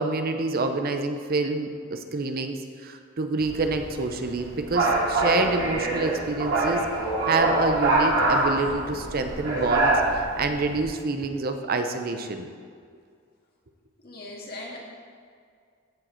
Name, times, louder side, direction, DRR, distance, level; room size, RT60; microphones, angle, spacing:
voice 1, 0.0-6.8 7.3-9.9 10.4-12.5, right 3 dB, 50° right, 7 dB, 0.6 m, -27 dB
sound 1, 3.4-10.8, right 2 dB, 65° right, 2.5 m, -25 dB
voice 2, 14.0-14.8, left 2 dB, 50° left, -2 dB, 1.8 m, -39 dB
14.5 x 4.9 x 4.4 m, 2.1 s
head